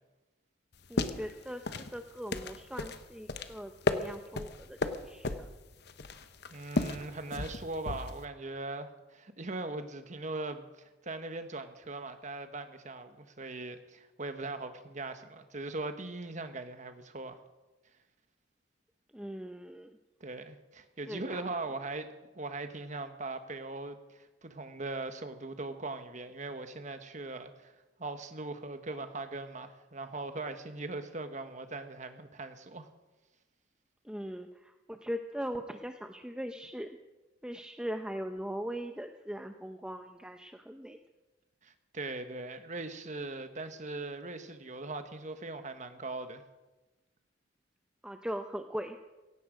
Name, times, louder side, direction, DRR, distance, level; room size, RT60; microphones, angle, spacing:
sound 1, 0.7-8.2, left 2 dB, 60° left, 1.0 m, -35 dB
voice 1, 0.9-5.5 19.1-20.0 21.1-21.4 34.0-36.9 37.4-41.0 48.0-49.0, equal, 5° right, 6 dB, 0.6 m, -40 dB
voice 2, 6.5-17.4 20.2-27.7 28.0-32.9 41.6-46.4, right 2 dB, 40° right, 8 dB, 1.3 m, -40 dB
17.0 x 16.5 x 5.2 m, 1.1 s
head